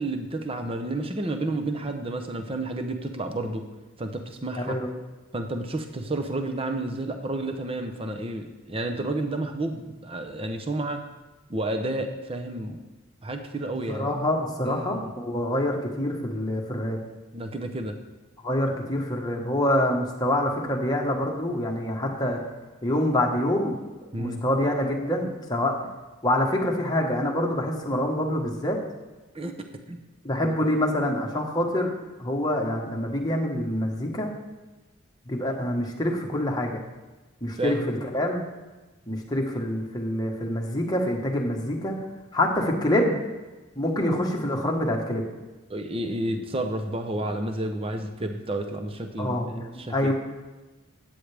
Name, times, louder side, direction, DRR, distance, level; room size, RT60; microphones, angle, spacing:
voice 1, 0.0-3.6 4.0-4.8 5.3-11.0 11.5-12.8 13.2-14.1 14.6-15.1 17.3-17.9 24.1-24.4 29.3-29.5 29.9-30.0 30.4-30.6 37.6-37.8 45.7-50.1, right 2 dB, 25° right, 6 dB, 0.7 m, -31 dB
voice 2, 4.5-4.9 13.9-17.0 18.4-22.4 22.8-23.8 24.2-25.7 26.2-28.8 30.2-31.9 32.2-34.3 35.3-36.8 37.4-38.4 39.1-41.9 42.3-43.1 43.7-45.2 49.2-50.1, left 1 dB, 20° left, 0 dB, 1.3 m, -26 dB
13.0 x 8.8 x 3.4 m, 1.2 s
head